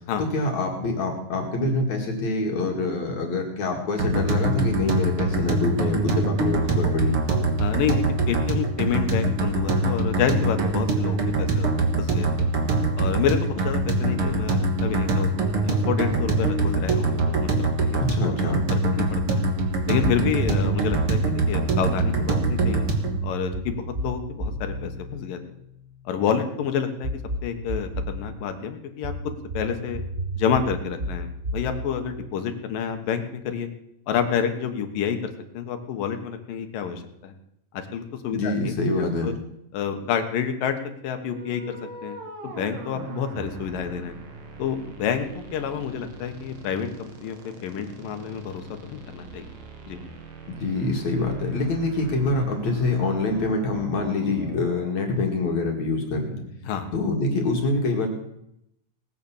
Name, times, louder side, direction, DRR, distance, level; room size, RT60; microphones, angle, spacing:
voice 1, 0.2-7.2 18.0-18.6 38.3-39.3 50.5-56.4 56.9-58.1, left 2 dB, 60° left, 1 dB, 3.3 m, -25 dB
sound 1, 4.0-23.2, right 2 dB, 50° right, 2.3 m, -24 dB
voice 2, 7.6-11.7 12.0-12.5 13.0-18.0 18.2-18.3 18.7-19.4 19.9-22.9 23.2-25.4 26.1-29.1 29.5-30.0 30.4-33.7 34.1-37.3 37.7-38.7 39.2-39.3 39.7-40.8 41.0-42.2 42.4-44.2 44.6-49.5 49.9-50.0 56.6-56.9, left 7 dB, 85° left, 7 dB, 3.1 m, -28 dB
sound 2, 20.0-21.3 22.4-26.2 27.0-28.3 29.0-33.0, right 1 dB, 20° right, 3.0 m, -32 dB
sound 3, 41.1-55.0, right 3 dB, 70° right, 3.6 m, -41 dB
18.5 x 9.6 x 7.2 m, 0.79 s
omnidirectional pair, 3.8 m